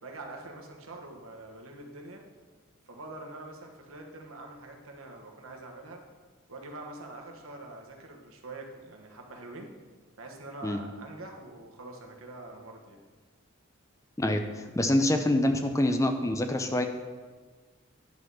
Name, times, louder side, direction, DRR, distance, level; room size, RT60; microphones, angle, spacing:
voice 1, 0.0-2.2 2.9-6.0 6.5-9.7 10.2-13.0 15.5-15.7, right 2 dB, 90° right, 2 dB, 1.3 m, -45 dB
voice 2, 14.2-16.9, left 1 dB, 15° left, 6 dB, 0.5 m, -26 dB
10.0 x 4.1 x 6.3 m, 1.4 s
head